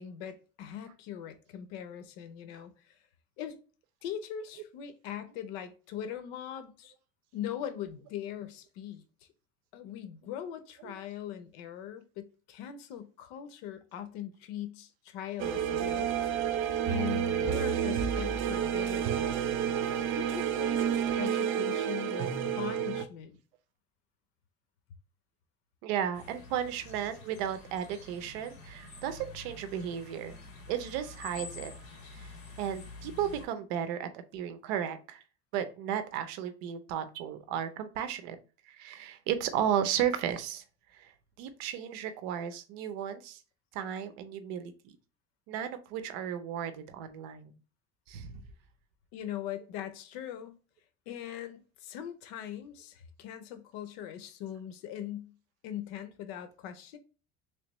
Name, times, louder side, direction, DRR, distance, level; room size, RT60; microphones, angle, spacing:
voice 1, 0.0-3.0 3.4-3.6 4.0-6.9 7.3-9.0 9.7-16.3 16.9-19.4 20.2-23.4 49.1-50.5 51.1-55.3 55.6-57.0, left 10 dB, 85° left, 0.7 m, -41 dB
sound 1, 15.4-23.1, right 8 dB, 45° right, 0.4 m, -30 dB
voice 2, 25.8-30.4 30.7-31.7 32.1-35.2 35.5-38.4 38.7-40.6 40.9-41.1 41.4-43.4 43.7-44.7 45.5-47.5 48.1-48.3, right 9 dB, 85° right, 0.7 m, -34 dB
sound 2, 26.1-33.4, left 3 dB, 45° left, 2.1 m, -48 dB
3.3 x 3.1 x 3.0 m
cardioid pair, 150°, 30 cm